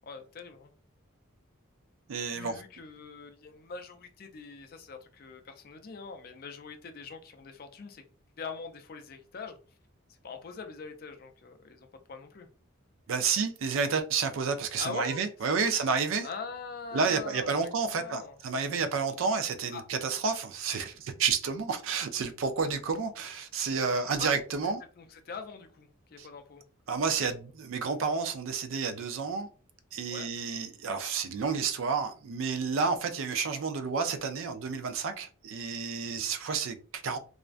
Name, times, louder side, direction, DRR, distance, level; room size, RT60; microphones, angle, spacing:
voice 1, 0.1-0.7 2.3-8.0 8.4-9.6 10.1-12.5 14.8-16.0 16.2-18.4 19.7-19.8 23.8-24.3 24.6-26.6 30.0-30.3, left 5 dB, 45° left, 0.3 m, -43 dB
voice 2, 2.1-2.6 13.1-16.3 16.9-24.8 26.2-26.3 26.9-29.5 29.9-37.2, right 5 dB, 70° right, 0.4 m, -30 dB
2.4 x 2.1 x 2.4 m
head